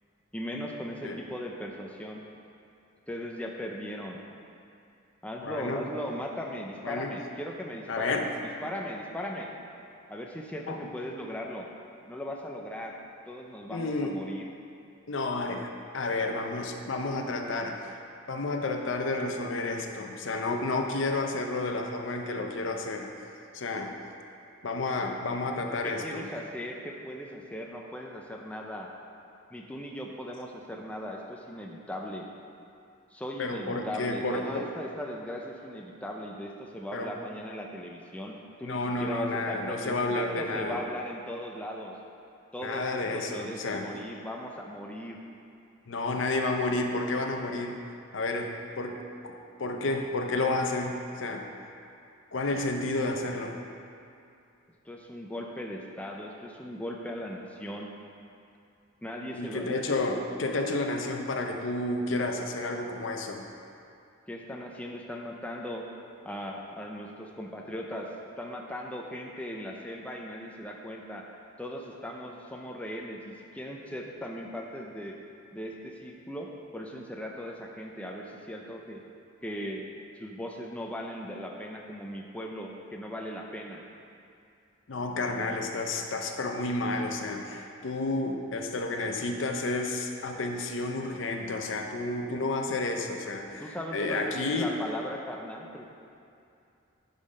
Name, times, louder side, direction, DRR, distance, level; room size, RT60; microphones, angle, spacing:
voice 1, 0.3-2.2 3.1-4.2 5.2-9.5 10.1-11.7 12.1-13.0 13.3-14.5 25.8-28.9 29.5-32.3 33.1-42.0 42.5-45.2 54.8-58.0 59.0-59.8 64.3-65.9 66.2-68.1 68.4-71.3 71.6-75.2 75.5-79.0 79.4-79.9 80.2-83.8 93.6-95.9, equal, 5° left, 0 dB, 0.5 m, -38 dB
voice 2, 5.4-5.8 6.8-7.2 7.9-8.3 10.7-10.8 13.7-14.2 15.1-18.0 18.3-23.1 23.5-23.9 24.6-26.3 33.4-34.7 36.9-37.1 38.6-40.8 42.6-43.9 45.9-47.8 48.1-49.0 49.2-51.4 52.3-53.6 59.3-63.4 84.9-94.7, left 2 dB, 70° left, 3 dB, 0.6 m, -31 dB
10.5 x 3.8 x 5.0 m, 2.5 s
head